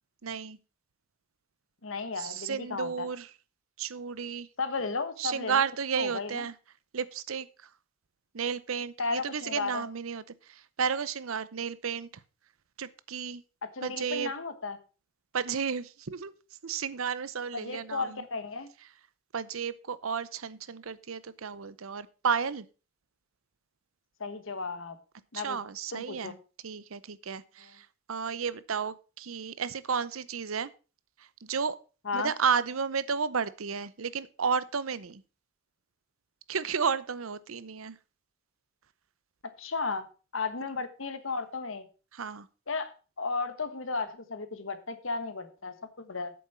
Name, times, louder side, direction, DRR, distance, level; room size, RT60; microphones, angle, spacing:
voice 1, 0.2-0.6 2.2-3.3 3.8-4.5 5.2-6.5 6.9-7.5 8.3-12.1 12.8-13.4 13.8-14.3 15.3-16.3 16.6-18.2 19.3-22.7 25.3-26.4 26.6-30.7 31.4-31.8 32.1-35.2 36.5-38.0 42.1-42.5, right 6 dB, 85° right, 17 dB, 0.7 m, -32 dB
voice 2, 1.8-3.1 4.6-5.6 5.9-6.5 9.0-9.8 13.6-14.8 17.5-18.7 24.2-25.0 25.3-25.6 25.9-26.3 32.0-32.3 39.6-40.0 40.3-41.8 42.7-46.3, left 4 dB, 65° left, 11 dB, 1.3 m, -34 dB
8.6 x 7.0 x 5.6 m, 0.35 s
head